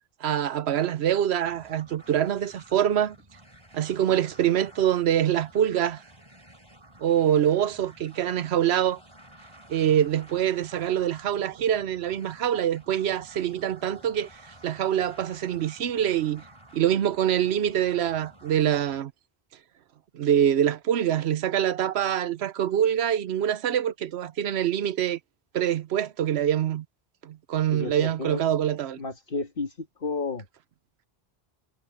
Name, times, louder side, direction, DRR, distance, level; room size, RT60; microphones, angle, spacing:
voice 1, 0.2-3.2 3.7-6.0 7.0-9.0 9.7-14.3 14.6-16.4 16.7-19.1 20.1-25.2 25.5-26.8 27.2-29.0, right 10 dB, 85° right, 1.0 m, -25 dB
sound 1, 1.4-19.0, right 1 dB, 25° right, 3.7 m, -52 dB
voice 2, 27.7-28.4 29.0-30.5, left 3 dB, 60° left, 2.0 m, -32 dB
omnidirectional pair, 1.1 m